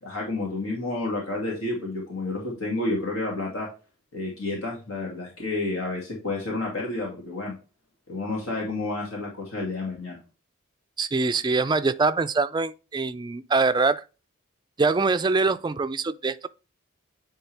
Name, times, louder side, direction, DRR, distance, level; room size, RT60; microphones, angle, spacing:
voice 1, 0.0-3.7 4.1-7.5 8.1-10.2, left 2 dB, 85° left, 2.4 m, -30 dB
voice 2, 11.0-14.0 14.8-16.5, right 3 dB, 20° right, 0.3 m, -24 dB
9.4 x 3.7 x 3.4 m
head